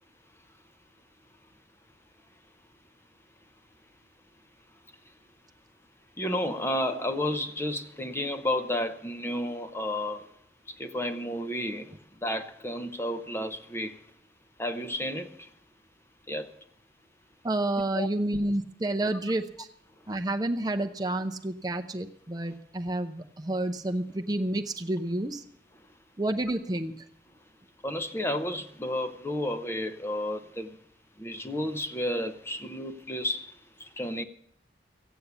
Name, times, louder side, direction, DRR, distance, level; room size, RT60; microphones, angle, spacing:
voice 1, 6.2-10.3 10.7-11.9 12.2-14.0 14.6-15.5 16.3-16.5 17.9-18.1 27.8-30.8 31.2-33.5 33.8-34.2, left 1 dB, 15° left, 0.8 m, -32 dB
voice 2, 17.4-19.7 20.1-25.4 26.2-27.0, right 1 dB, 20° right, 0.7 m, -30 dB
15.5 x 8.4 x 8.2 m
head